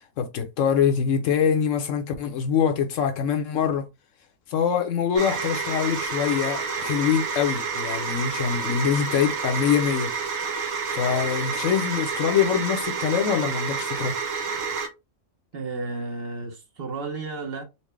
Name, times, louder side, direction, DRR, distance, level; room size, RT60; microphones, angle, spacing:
voice 1, 0.2-3.8 4.5-10.1 10.9-14.1, left 7 dB, 70° left, 1.0 m, -24 dB
sound 1, 5.2-14.9, right 5 dB, 75° right, 1.2 m, -29 dB
voice 2, 15.5-17.6, right 3 dB, 55° right, 0.8 m, -32 dB
4.2 x 2.1 x 3.1 m
omnidirectional pair, 1.4 m